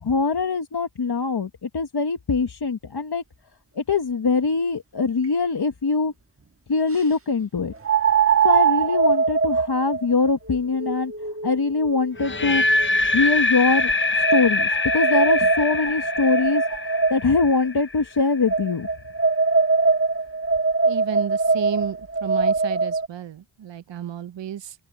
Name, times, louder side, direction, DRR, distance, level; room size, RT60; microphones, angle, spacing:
voice 1, 0.0-3.2 3.7-6.1 6.7-7.7 8.4-11.1 11.4-12.6 13.1-13.9 14.3-16.6 17.1-18.9, left 4 dB, 55° left, 1.5 m, -23 dB
Hallow Tube Whistle, 5.2-5.3 7.8-13.0 13.7-17.5 18.5-23.1, right 4 dB, 30° right, 1.5 m, -22 dB
sound 1, 12.2-18.2, left 2 dB, 25° left, 0.8 m, -24 dB
voice 2, 20.8-24.7, right 9 dB, 70° right, 0.8 m, -32 dB
open air
cardioid pair, 50°, 46 cm